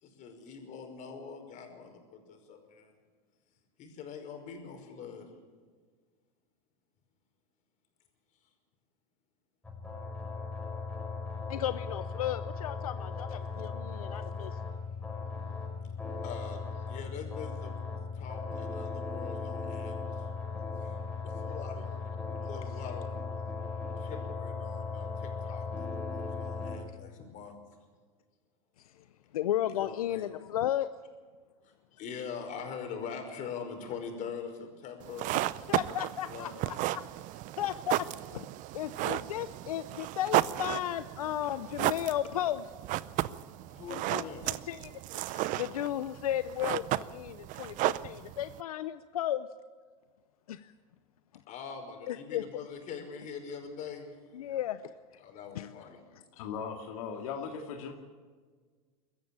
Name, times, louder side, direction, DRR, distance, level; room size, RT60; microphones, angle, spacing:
voice 1, 0.0-2.9 3.8-5.3 16.2-17.8 18.1-20.3 20.8-22.0 22.4-23.2 24.0-27.6 28.9-29.0 29.8-30.3 31.6-36.0 36.2-36.6 43.7-44.6 51.5-54.1 55.2-56.0, left 6 dB, 45° left, 5 dB, 5.3 m, -43 dB
sound 1, 9.6-26.8, left 4 dB, 5° left, 5.6 m, -37 dB
voice 2, 11.5-14.6 15.4-15.7 20.6-21.2 23.6-24.1 28.8-28.9 29.3-30.9 35.7-37.0 37.3-38.1 38.3-38.5 38.7-42.7 43.9-49.5 50.5-50.7 52.1-52.4 54.3-54.8 55.5-55.7, left 12 dB, 85° left, 13 dB, 0.7 m, -35 dB
sound 2, 35.0-48.6, right 16 dB, 45° right, 0.7 m, -34 dB
voice 3, 56.3-57.9, left 6 dB, 70° left, 3 dB, 2.4 m, -38 dB
23.0 x 14.5 x 8.8 m, 1.6 s
hypercardioid pair, 110°, 18 cm